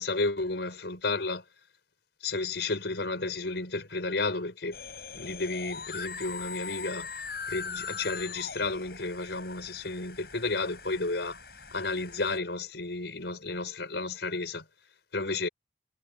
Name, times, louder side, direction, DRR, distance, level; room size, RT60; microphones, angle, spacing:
voice 1, 0.0-1.4 2.2-4.8 5.1-7.1 7.5-11.4 11.7-14.6 15.1-15.5, left 3 dB, 80° left, 4.5 m, -32 dB
sound 1, 4.7-12.4, left 5 dB, 60° left, 7.9 m, -41 dB
head